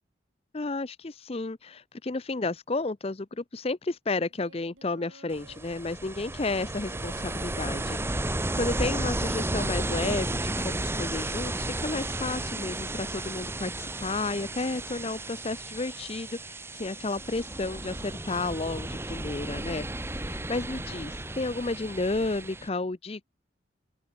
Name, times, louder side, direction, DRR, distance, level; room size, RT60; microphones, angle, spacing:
voice 1, 0.5-19.9 20.2-23.2, left 3 dB, 30° left, 0.6 m, -32 dB
Singing, 4.3-5.6 6.1-8.1 8.9-9.5, right 2 dB, 85° right, 6.1 m, -56 dB
Ocean, 5.3-22.7, right 1 dB, 15° right, 1.2 m, -33 dB
open air
head